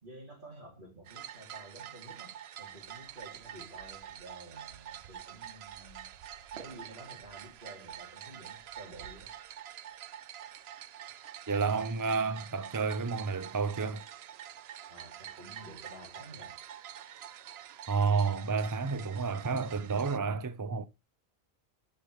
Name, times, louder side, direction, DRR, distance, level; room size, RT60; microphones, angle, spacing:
voice 1, 0.0-6.1 6.5-9.3 14.9-16.5, right 1 dB, 55° right, 3.0 m, -51 dB
sound 1, 1.0-20.2, right 10 dB, 80° right, 0.9 m, -47 dB
voice 2, 11.5-14.1 17.9-20.8, right 5 dB, 30° right, 0.4 m, -30 dB
13.0 x 5.4 x 3.1 m
omnidirectional pair, 1.0 m